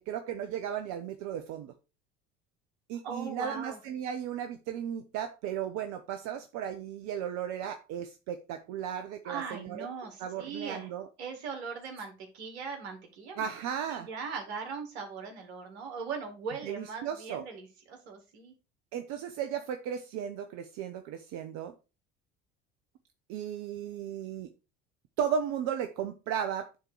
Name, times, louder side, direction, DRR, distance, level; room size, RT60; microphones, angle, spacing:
voice 1, 0.0-1.7 2.9-9.9 10.2-11.1 13.4-14.1 16.6-17.4 18.9-21.7 23.3-24.5 25.2-26.8, right 8 dB, 55° right, 0.9 m, -35 dB
voice 2, 3.0-3.8 9.2-10.9 11.2-13.5 13.8-18.5, right 5 dB, 75° right, 2.4 m, -40 dB
9.9 x 3.8 x 4.6 m
hypercardioid pair, 70°, 33 cm